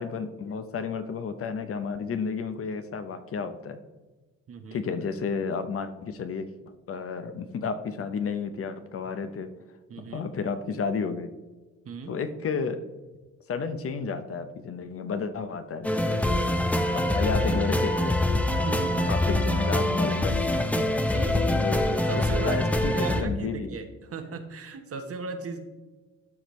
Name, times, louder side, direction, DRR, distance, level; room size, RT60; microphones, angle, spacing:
voice 1, 0.0-3.8 4.7-6.5 6.9-9.5 10.1-11.3 12.1-12.9 13.5-16.3 16.9-18.1 19.0-20.8 21.5-23.7, left 5 dB, 50° left, 10 dB, 0.7 m, -32 dB
voice 2, 4.5-4.8 9.9-10.3 11.8-12.1 18.6-19.1 21.0-21.7 21.9-22.7 22.9-25.7, right 4 dB, 50° right, 7 dB, 1.0 m, -36 dB
sound 1, 15.8-23.2, left 1 dB, 5° left, 0.6 m, -25 dB
12.0 x 5.1 x 3.1 m, 1.2 s
cardioid pair, 90°, 30 cm